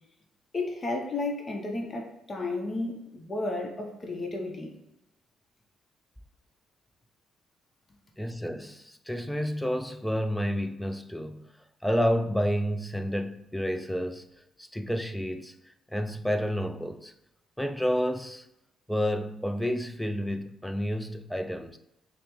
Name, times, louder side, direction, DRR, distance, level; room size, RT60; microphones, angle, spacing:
voice 1, 0.5-4.7, left 2 dB, 35° left, 0.7 m, -33 dB
voice 2, 8.2-11.5 11.8-14.3 14.6-15.5 15.9-17.1 17.6-18.5 18.9-21.8, equal, 5° left, 0.3 m, -30 dB
5.5 x 2.0 x 3.1 m
cardioid pair, 90°, 0 cm